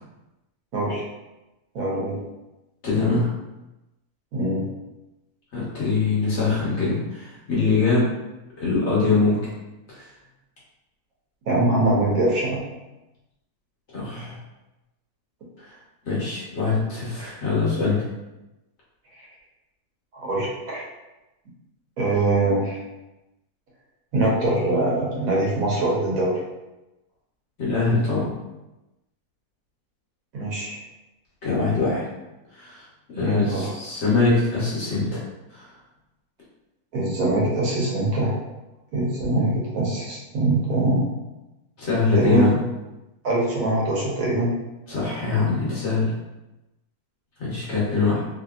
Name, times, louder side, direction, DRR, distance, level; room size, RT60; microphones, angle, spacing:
voice 1, 0.7-1.0 1.7-2.2 4.3-4.6 11.5-12.6 19.1-19.3 20.1-20.8 22.0-22.8 24.1-26.4 30.3-30.8 33.2-33.7 36.9-38.3 38.9-41.0 42.1-42.6 43.2-44.5, right 2 dB, 70° right, -4 dB, 1.2 m, -23 dB
voice 2, 2.8-3.3 5.5-8.1 8.6-9.4 9.9-10.1 13.9-14.4 15.6-15.7 16.1-18.0 27.6-28.3 31.4-32.0 32.5-32.8 33.1-35.2 35.5-35.7 41.8-42.5 44.9-46.1 47.4-48.2, left 4 dB, 55° left, -7 dB, 1.1 m, -23 dB
2.8 x 2.7 x 2.3 m, 1.0 s
omnidirectional pair, 1.6 m